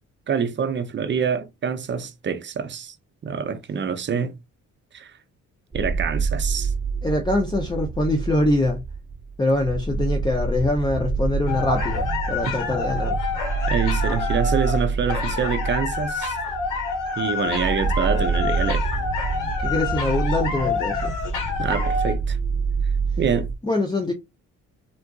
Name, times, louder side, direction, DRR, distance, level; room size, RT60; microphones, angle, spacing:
voice 1, 0.3-3.0 3.2-4.3 4.9-5.1 5.7-6.7 13.7-16.4 17.2-18.8 21.6-22.4 23.2-23.5, right 6 dB, 40° right, 0.6 m, -26 dB
sound 1, 5.7-23.5, right 4 dB, 10° right, 1.0 m, -27 dB
voice 2, 7.0-8.8 9.4-13.2 19.6-21.1 23.6-24.1, left 2 dB, 15° left, 0.6 m, -24 dB
sound 2, 11.5-22.2, left 5 dB, 85° left, 1.1 m, -28 dB
3.7 x 2.4 x 2.3 m
cardioid pair, 90°, 30 cm